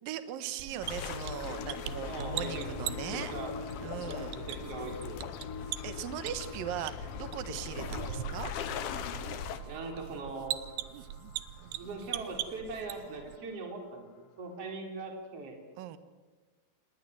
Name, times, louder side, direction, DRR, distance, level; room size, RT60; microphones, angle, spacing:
voice 1, 0.0-3.3 3.8-4.3 5.8-8.5 15.8-16.0, right 10 dB, 70° right, 11 dB, 2.9 m, -39 dB
sound 1, 0.6-13.4, right 12 dB, 90° right, 3.0 m, -42 dB
sound 2, 0.8-9.6, left 7 dB, 75° left, 3.2 m, -40 dB
sound 3, 1.0-14.1 14.6-14.7, left 6 dB, 60° left, 1.7 m, -48 dB
voice 2, 2.1-2.7 3.0-3.5 4.1-5.2 8.0-8.2 9.7-10.6 11.7-15.6, right 3 dB, 40° right, 2 dB, 4.7 m, -41 dB
28.5 x 19.5 x 8.0 m, 1.3 s
omnidirectional pair, 4.4 m